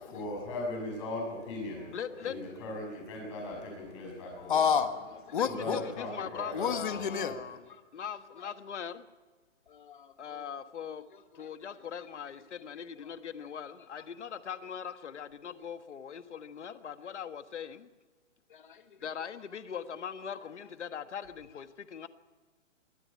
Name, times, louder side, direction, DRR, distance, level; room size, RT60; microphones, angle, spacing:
voice 1, 0.1-2.0 2.2-4.5 5.5-7.0, left 2 dB, 25° left, 1 dB, 6.4 m, -38 dB
voice 2, 1.9-2.3 5.3-7.6 7.9-9.0 10.2-11.0 11.3-17.9 19.0-22.1, left 8 dB, 65° left, 11 dB, 1.4 m, -40 dB
voice 3, 4.5-5.8 6.5-7.3 9.7-10.5 11.4-11.5 18.5-18.8, left 7 dB, 40° left, 9 dB, 1.4 m, -31 dB
23.0 x 13.5 x 8.6 m, 1.4 s
hypercardioid pair, 180°, 37 cm